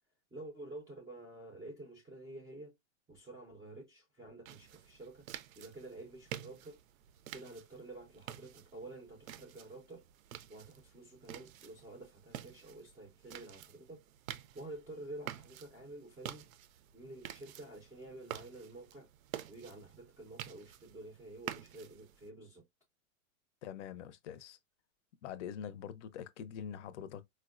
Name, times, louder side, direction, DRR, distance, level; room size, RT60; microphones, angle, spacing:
voice 1, 0.3-2.7 3.1-5.3 5.6-6.8 7.3-10.1 10.5-14.0 14.5-16.5 16.9-19.1 19.5-22.6, right 2 dB, 10° right, 0.4 m, -50 dB
sound 1, 4.5-22.3, right 11 dB, 70° right, 0.5 m, -49 dB
voice 2, 23.6-24.6 25.2-27.3, left 9 dB, 55° left, 0.6 m, -44 dB
4.3 x 2.1 x 2.4 m
hypercardioid pair, 130°, 42 cm